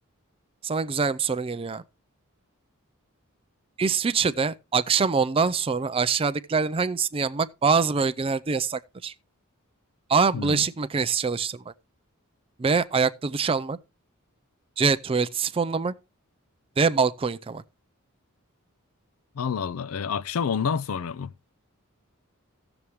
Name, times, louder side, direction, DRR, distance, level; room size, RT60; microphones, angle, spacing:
voice 1, 0.6-1.8 3.8-9.1 10.1-11.7 12.6-13.8 14.8-15.9 16.8-17.6, right 5 dB, 25° right, 0.4 m, -24 dB
voice 2, 10.3-10.7 19.3-21.3, left 6 dB, 80° left, 0.4 m, -28 dB
16.0 x 7.0 x 3.1 m
head